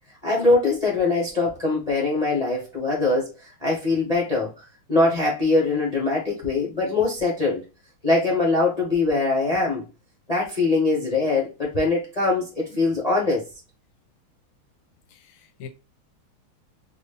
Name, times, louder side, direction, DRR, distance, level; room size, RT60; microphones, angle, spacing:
voice 1, 0.2-7.6 8.0-9.8 10.3-13.4, left 3 dB, 45° left, 0.5 m, -22 dB
voice 2, 15.1-15.7, left 6 dB, 90° left, 1.5 m, -43 dB
4.0 x 2.3 x 3.2 m
omnidirectional pair, 2.2 m